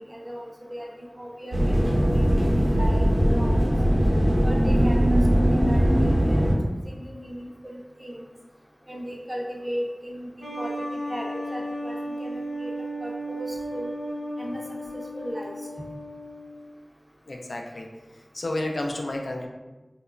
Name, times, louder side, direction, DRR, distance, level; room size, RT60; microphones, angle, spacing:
voice 1, 0.0-3.0 3.3-3.6 4.4-8.2 8.9-10.3 10.6-10.8 11.1-12.7 13.0-13.9 14.4-14.6 15.2-15.5, equal, 15° right, -3 dB, 0.4 m, -36 dB
sound 1, 1.5-6.5, equal, 60° right, 0.6 m, -20 dB
sound 2, 10.4-16.7, equal, 35° left, 0.6 m, -34 dB
voice 2, 17.3-17.9 18.3-19.5, left 1 dB, 85° left, 1 dB, 0.3 m, -30 dB
2.9 x 2.1 x 2.4 m, 1.1 s
wide cardioid pair, 60°, 0 cm